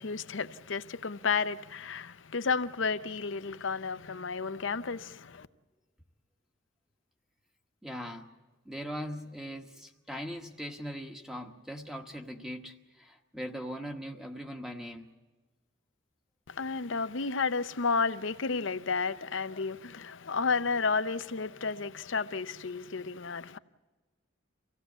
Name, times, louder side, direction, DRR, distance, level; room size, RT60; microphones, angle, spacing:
voice 1, 0.0-5.5 16.5-23.6, left 4 dB, 70° left, 0.7 m, -32 dB
voice 2, 7.8-8.3 8.6-15.1, equal, ahead, 1.1 m, -40 dB
25.0 x 16.5 x 8.1 m
head